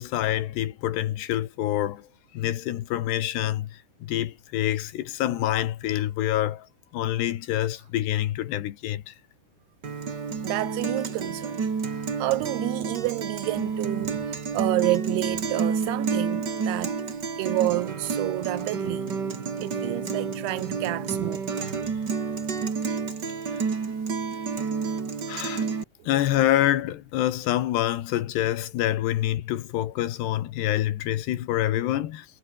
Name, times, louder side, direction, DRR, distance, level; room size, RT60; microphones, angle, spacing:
voice 1, 0.0-2.1 2.3-3.7 4.0-6.7 6.9-9.1 25.3-25.7 26.1-32.3, left 13 dB, 75° left, 3.5 m, -26 dB
Guitar, 9.8-25.8, right 5 dB, 30° right, 2.1 m, -30 dB
voice 2, 10.4-11.6 11.9-17.0 17.4-19.1 19.6-21.6, right 18 dB, 85° right, 2.4 m, -29 dB
omnidirectional pair, 5.1 m